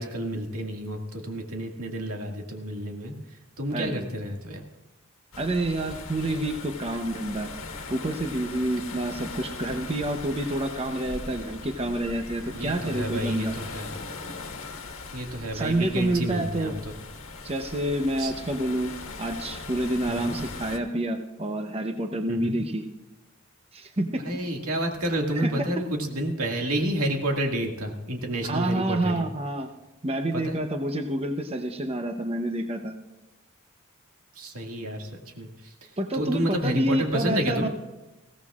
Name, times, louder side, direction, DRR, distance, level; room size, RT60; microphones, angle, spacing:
voice 1, 0.0-3.1 3.6-4.6 12.5-13.9 15.1-16.9 18.2-18.3 20.1-20.4 22.3-22.6 24.2-29.3 30.3-30.6 34.4-35.1 35.4-35.5 36.1-37.7, right 1 dB, 90° right, 1 dB, 2.0 m, -29 dB
voice 2, 3.7-4.1 5.4-7.5 7.9-13.6 15.5-16.8 17.4-18.9 19.2-22.8 23.7-24.2 25.3-25.5 28.4-29.7 30.0-33.0 36.0-37.7, right 1 dB, 30° right, 5 dB, 0.8 m, -28 dB
sound 1, 5.3-20.8, left 3 dB, 70° left, 1.5 m, -40 dB
21.0 x 16.5 x 2.4 m, 1.1 s
head